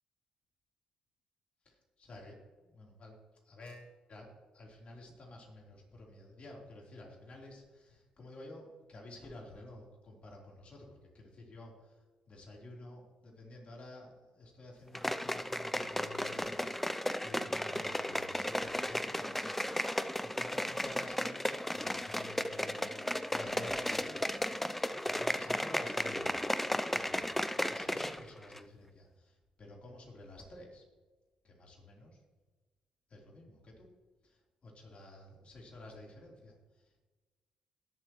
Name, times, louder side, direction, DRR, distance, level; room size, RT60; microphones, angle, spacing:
voice 1, 1.7-3.2 3.4-12.0 12.3-26.3 26.9-30.8 31.4-32.2 33.1-33.9 34.2-36.8, left 1 dB, 50° left, -2 dB, 4.0 m, -52 dB
sound 1, 14.9-28.2 28.5-28.6, left 1 dB, 5° left, 0.6 m, -34 dB
20.0 x 7.6 x 3.2 m, 1.3 s
supercardioid pair, 55°, 3 cm